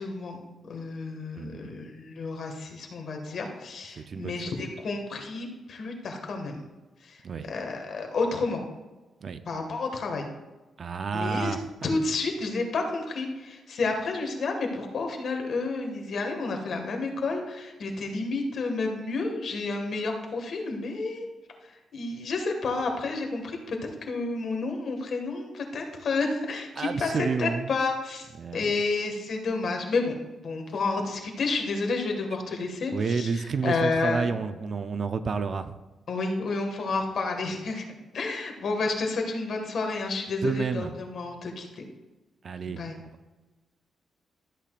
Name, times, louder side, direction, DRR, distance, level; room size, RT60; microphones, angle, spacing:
voice 1, 0.0-6.6 7.0-8.6 9.5-10.3 11.1-11.6 11.8-21.3 21.6-28.3 28.5-30.1 30.4-34.3 36.1-37.8 38.1-41.8 42.7-42.9, left 3 dB, 60° left, 3 dB, 1.8 m, -30 dB
voice 2, 1.3-1.7 4.0-4.4 7.2-7.5 9.2-9.4 10.8-11.9 26.8-27.7 28.4-28.6 32.9-35.7 40.4-41.0 42.4-42.8, right 5 dB, 50° right, 10 dB, 0.6 m, -30 dB
13.5 x 8.4 x 2.5 m, 1.1 s
cardioid pair, 95°, 0 cm